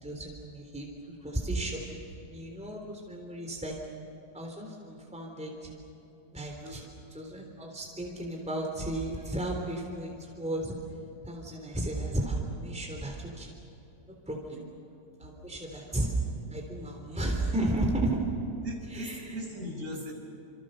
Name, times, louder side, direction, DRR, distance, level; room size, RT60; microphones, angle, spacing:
voice 1, 0.0-0.9 1.2-3.7 4.3-5.7 6.3-6.8 7.1-10.7 11.2-13.5 14.3-14.6 15.2-16.1 16.5-18.2 18.9-19.4, right 1 dB, 5° right, 0 dB, 3.5 m, -34 dB
voice 2, 18.6-20.1, equal, 45° right, -1 dB, 7.0 m, -39 dB
29.5 x 27.5 x 6.6 m, 2.9 s
omnidirectional pair, 1.8 m